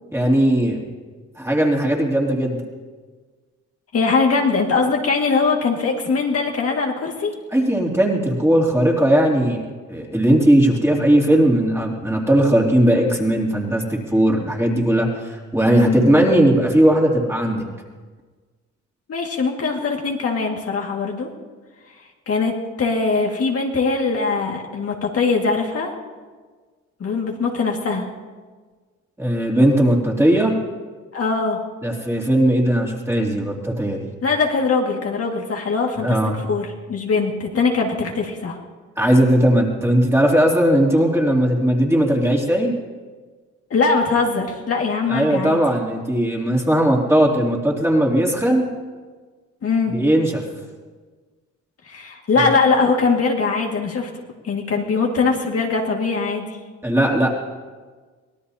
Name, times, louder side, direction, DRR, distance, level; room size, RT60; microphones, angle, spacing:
voice 1, 0.1-0.8 1.4-2.6 7.5-9.6 9.9-17.6 29.2-30.5 31.8-34.1 36.0-36.4 39.0-42.7 45.1-48.7 49.9-50.4 52.4-52.5 56.8-57.4, right 1 dB, 10° right, -1 dB, 2.9 m, -18 dB
voice 2, 3.9-7.3 15.8-16.1 19.1-21.3 22.3-22.5 22.8-25.9 27.0-28.1 31.1-31.6 34.2-36.2 36.4-38.6 43.7-45.6 49.6-49.9 51.9-54.1 54.4-56.6, left 4 dB, 50° left, 0 dB, 2.0 m, -21 dB
24.0 x 18.0 x 2.8 m, 1.5 s
cardioid pair, 90°, 30 cm